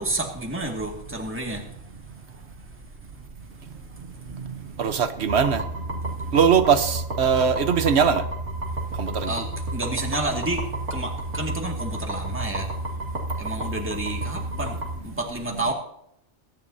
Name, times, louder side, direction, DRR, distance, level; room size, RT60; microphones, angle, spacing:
voice 1, 0.0-1.8 6.2-6.3 8.7-8.8 9.2-12.7 13.4-15.7, right 2 dB, 10° right, 0 dB, 2.1 m, -30 dB
voice 2, 4.8-5.6 6.3-8.2 9.0-9.3, right 7 dB, 60° right, 10 dB, 1.2 m, -20 dB
sound 1, 5.3-15.0, right 1 dB, 80° right, 2.4 m, -31 dB
22.0 x 10.5 x 2.8 m, 0.75 s
omnidirectional pair, 1.2 m